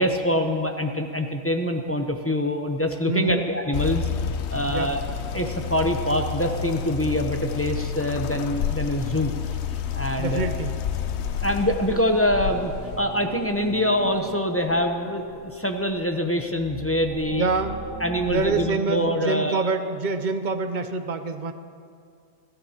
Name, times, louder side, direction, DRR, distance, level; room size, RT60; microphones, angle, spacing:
voice 1, 0.0-4.1 4.5-5.0 5.3-9.3 9.9-10.6 11.4-17.5 18.0-19.7, equal, 15° left, 3 dB, 0.6 m, -25 dB
voice 2, 3.1-3.5 4.7-4.9 10.2-10.7 11.3-11.4 17.3-17.8 18.3-21.5, right 3 dB, 45° right, 9 dB, 0.7 m, -26 dB
sound 1, 3.7-13.0, left 7 dB, 65° left, 0.9 m, -30 dB
sound 2, 11.3-18.7, right 2 dB, 85° right, 3.0 m, -39 dB
30.0 x 12.5 x 2.9 m, 2.3 s
omnidirectional pair, 1.3 m